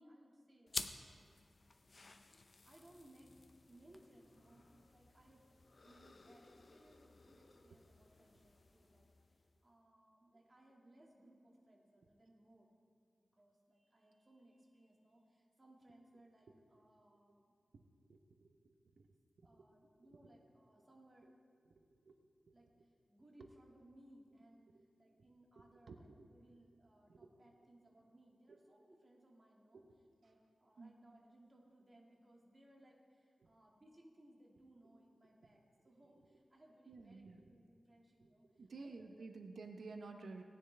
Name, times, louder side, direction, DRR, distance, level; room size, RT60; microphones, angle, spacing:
voice 1, 0.0-1.9 2.6-3.3 3.7-4.6 4.9-5.4 5.8-12.7 13.2-17.5 19.4-21.3 22.5-24.7 25.0-29.8 30.2-39.3, right 1 dB, 30° right, -2 dB, 2.0 m, -65 dB
sound 1, 0.7-9.7, left 3 dB, 45° left, 0.6 m, -52 dB
voice 2, 18.1-18.6 19.0-19.1 19.4-19.5 22.0-22.1 22.5-22.6 24.7-24.8 25.9-26.3 27.1-27.3 28.5-28.6 30.8-30.9 33.4-33.5 36.9-37.4 38.2-40.4, right 3 dB, 85° right, 5 dB, 0.9 m, -52 dB
18.0 x 10.0 x 3.4 m, 2.1 s
wide cardioid pair, 100°, 0 cm